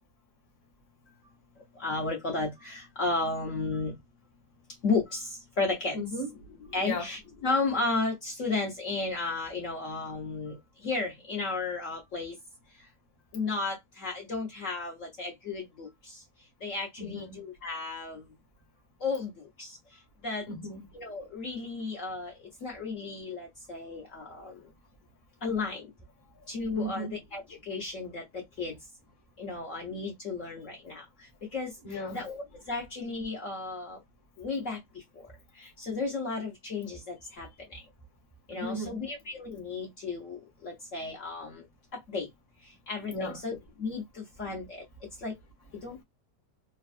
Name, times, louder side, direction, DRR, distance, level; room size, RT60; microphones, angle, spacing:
voice 1, 1.8-3.9 4.8-5.3 5.6-6.0 6.7-10.5 10.8-12.3 13.3-15.9 16.6-18.2 19.0-19.3 19.6-19.7 20.2-20.4 20.9-22.3 22.6-24.5 25.4-25.8 26.5-27.4 27.7-28.2 28.6-28.7 29.4-31.0 31.5-31.7 32.1-34.0 34.4-34.8 35.8-37.5 38.5-40.4 40.6-41.6 42.1-42.3 42.9-44.0 44.4-44.8 45.2-45.3 45.8-46.0, left 3 dB, 55° left, 1.0 m, -33 dB
voice 2, 5.9-6.3 6.8-7.1 17.0-17.4 20.5-20.9 26.3-26.5 26.7-27.1 31.8-32.3 38.5-39.0 43.1-43.4, left 1 dB, 15° left, 0.9 m, -36 dB
3.2 x 2.3 x 2.4 m
omnidirectional pair, 1.9 m